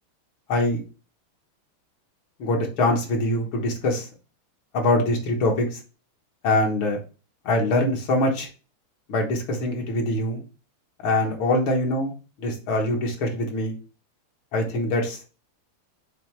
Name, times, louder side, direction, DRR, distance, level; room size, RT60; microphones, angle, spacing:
voice 1, 0.5-0.8 2.4-4.1 4.7-5.8 6.4-7.0 7.5-8.5 9.1-10.4 11.0-12.1 12.4-13.8 14.5-15.3, left 1 dB, 75° left, 1 dB, 2.2 m, -23 dB
7.0 x 3.2 x 4.5 m, 0.33 s
omnidirectional pair, 2.3 m